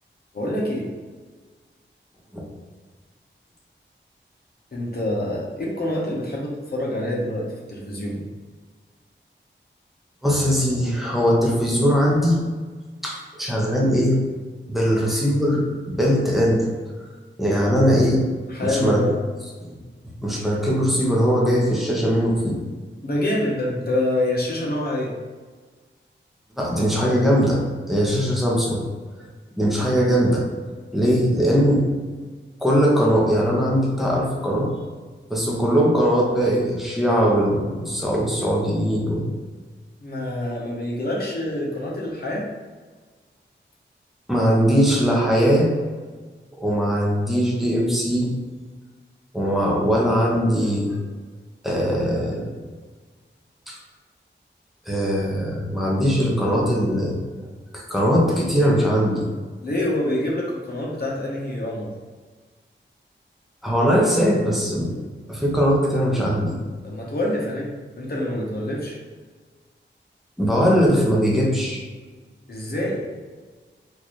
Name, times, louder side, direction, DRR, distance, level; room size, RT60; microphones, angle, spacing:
voice 1, 0.3-0.9 4.7-8.2 14.9-15.0 18.5-19.2 23.0-25.1 40.0-42.5 59.6-61.9 66.8-69.0 72.5-73.1, left 1 dB, 50° left, -4 dB, 0.9 m, -26 dB
voice 2, 10.2-12.4 13.0-14.2 14.7-16.7 17.4-18.2 18.6-19.0 19.6-19.7 20.2-22.6 26.6-28.9 29.6-30.4 30.9-31.9 32.6-34.7 35.3-39.4 44.3-45.7 46.6-48.3 49.3-50.9 51.6-52.5 53.7-53.8 54.9-57.2 57.7-59.3 63.6-64.9 65.3-66.6 70.4-71.8, equal, ahead, -4 dB, 0.8 m, -20 dB
3.8 x 2.6 x 3.1 m, 1.4 s
wide cardioid pair, 95°, 20 cm